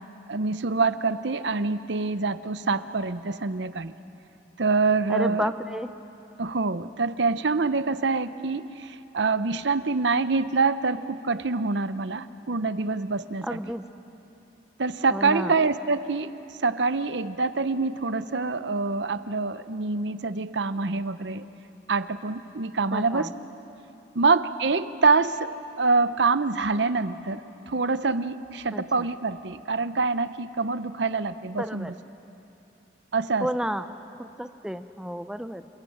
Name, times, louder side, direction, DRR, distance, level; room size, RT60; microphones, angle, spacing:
voice 1, 0.3-3.9 4.6-5.5 6.4-13.6 14.8-16.3 16.6-21.5 21.9-23.3 24.1-31.9 33.1-33.5, right 4 dB, 70° right, 13 dB, 0.8 m, -25 dB
voice 2, 5.1-5.9 13.4-13.8 15.1-15.5 22.9-23.3 28.7-28.8 31.6-31.9 33.4-33.9 34.2-35.7, equal, 5° right, 9 dB, 0.6 m, -31 dB
30.0 x 21.5 x 8.7 m, 2.8 s
head